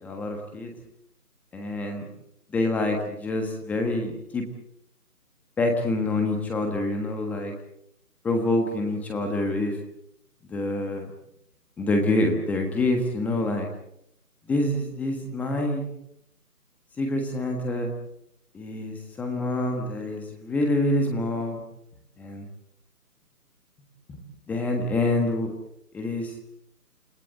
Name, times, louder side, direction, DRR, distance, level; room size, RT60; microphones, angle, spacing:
voice 1, 0.0-0.7 1.5-2.1 2.5-4.4 5.6-7.5 8.2-9.8 10.5-11.1 11.8-13.7 14.5-15.9 17.0-17.9 18.5-21.6 22.2-22.4 24.1-24.2 24.5-25.5 25.9-26.3, left 2 dB, 5° left, 3 dB, 1.4 m, -26 dB
29.0 x 19.0 x 7.9 m, 0.76 s
figure-of-eight pair, 155°, 46 cm